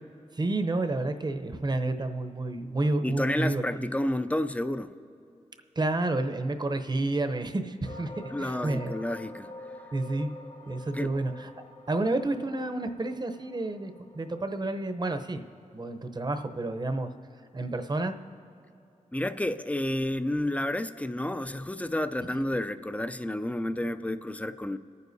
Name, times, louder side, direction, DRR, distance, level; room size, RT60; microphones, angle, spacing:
voice 1, 0.3-3.9 5.8-8.9 9.9-10.3 10.7-11.5 11.9-15.4 15.7-17.1 17.5-18.1, right 2 dB, 35° right, 7 dB, 0.8 m, -30 dB
voice 2, 3.0-4.9 8.3-9.5 10.9-11.2 19.1-24.8, left 1 dB, 10° left, 11 dB, 0.5 m, -30 dB
sound 1, 7.8-15.2, left 2 dB, 65° left, 1.8 m, -46 dB
24.0 x 9.4 x 2.7 m, 2.7 s
cardioid pair, 55°, 13 cm